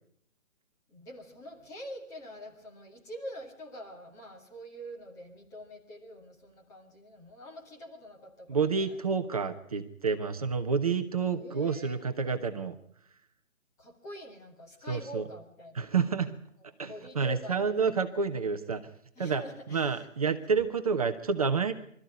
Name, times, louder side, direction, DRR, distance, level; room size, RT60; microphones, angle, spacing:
voice 1, 0.9-9.0 11.3-12.0 13.8-15.9 16.8-17.7 19.2-20.4, equal, 10° left, -1 dB, 2.1 m, -45 dB
voice 2, 8.5-12.7 14.9-15.3 15.7-16.3 16.8-18.8 19.2-19.4 19.7-21.7, right 5 dB, 25° right, 7 dB, 1.1 m, -29 dB
25.5 x 13.5 x 9.5 m, 0.67 s
figure-of-eight pair, 160°, 41 cm